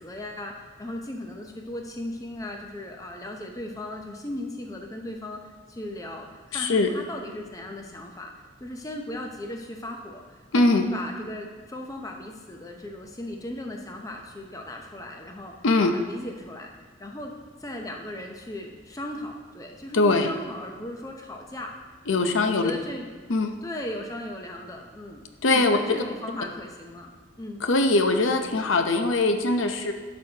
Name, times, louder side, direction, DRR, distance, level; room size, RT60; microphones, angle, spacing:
voice 1, 0.0-16.7 17.0-17.3 17.6-21.7 22.1-23.1 23.6-25.3 25.5-27.1 27.4-27.6, left 1 dB, 15° left, 2 dB, 0.6 m, -37 dB
voice 2, 6.5-6.9 10.5-10.9 15.6-15.9 19.9-20.3 22.1-22.7 23.3-23.5 25.4-26.0 27.6-29.9, left 2 dB, 85° left, 6 dB, 0.7 m, -21 dB
12.0 x 6.2 x 2.9 m, 1.5 s
head